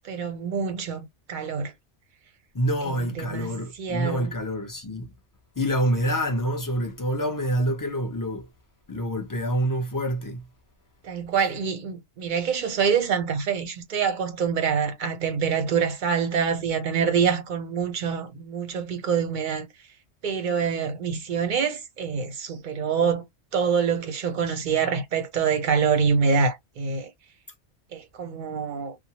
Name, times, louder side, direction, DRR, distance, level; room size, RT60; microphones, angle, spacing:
voice 1, 0.0-1.7 2.9-4.3 11.0-19.7 20.2-23.2 23.5-27.1 27.9-29.0, right 6 dB, 45° right, 0.7 m, -26 dB
voice 2, 2.5-5.1 5.6-8.4 8.9-10.4, equal, 20° left, 0.5 m, -26 dB
3.0 x 2.1 x 2.8 m
omnidirectional pair, 1.3 m